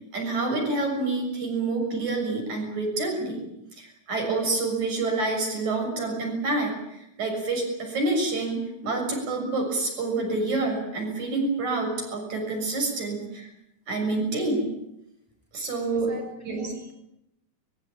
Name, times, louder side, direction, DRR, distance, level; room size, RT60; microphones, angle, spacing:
voice 1, 0.1-3.4 3.8-13.5 13.9-14.6 15.5-16.1 16.4-16.7, right 3 dB, 50° right, 2 dB, 8.1 m, -27 dB
voice 2, 15.9-16.9, left 1 dB, 5° right, 4 dB, 6.0 m, -41 dB
23.5 x 22.0 x 8.9 m, 0.83 s
omnidirectional pair, 4.2 m